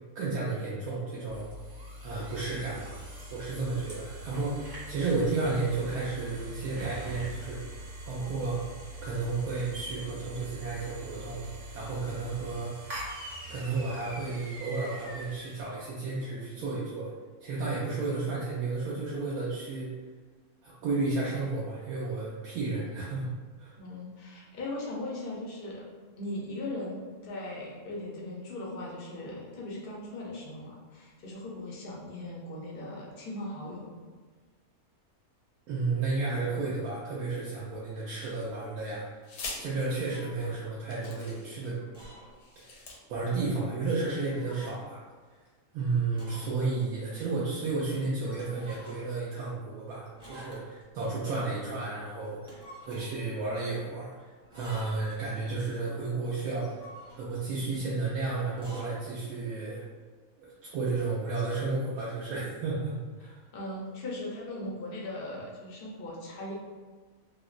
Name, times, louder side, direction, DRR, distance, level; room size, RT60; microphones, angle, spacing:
voice 1, 0.1-1.5 2.0-3.0 3.3-7.6 8.1-8.6 9.0-11.5 11.7-12.7 13.5-17.1 17.4-19.9 20.6-23.3 23.6-23.7 35.7-39.2 39.6-41.8 42.6-42.8 43.1-45.0 45.7-56.8 57.2-59.9 60.4-63.4, right 3 dB, 75° right, -7 dB, 1.0 m, -32 dB
sound 1, 1.3-15.6, right 1 dB, 40° right, 0.7 m, -43 dB
voice 2, 23.8-25.8 26.2-34.0 63.5-66.5, left 1 dB, 60° left, -4 dB, 0.6 m, -39 dB
sound 2, 38.1-38.7 39.2-39.6 40.4-40.5 40.9-41.7 42.3-43.0, left 3 dB, 75° left, 1.0 m, -42 dB
sound 3, 39.7-40.6 41.7-42.4 42.7-42.8 43.8-44.8 46.1-46.6 46.9-47.0 48.3-49.2 50.2-50.9 52.3-53.2 54.4-55.1 56.5-57.5 58.5-59.0, equal, 5° right, 0.6 m, -50 dB
3.6 x 2.0 x 2.4 m, 1.4 s
omnidirectional pair, 1.6 m